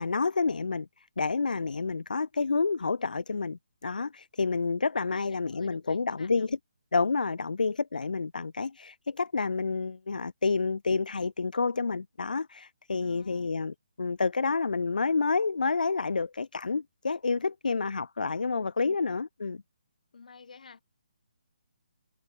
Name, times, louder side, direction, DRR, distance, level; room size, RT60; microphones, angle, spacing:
voice 1, 0.0-6.6 6.9-19.6, left 4 dB, 80° left, 0.8 m, -29 dB
voice 2, 5.1-6.5 13.0-13.6 18.8-19.0 20.1-20.8, left 5 dB, 65° left, 3.1 m, -52 dB
hypercardioid pair, 160°, 4 cm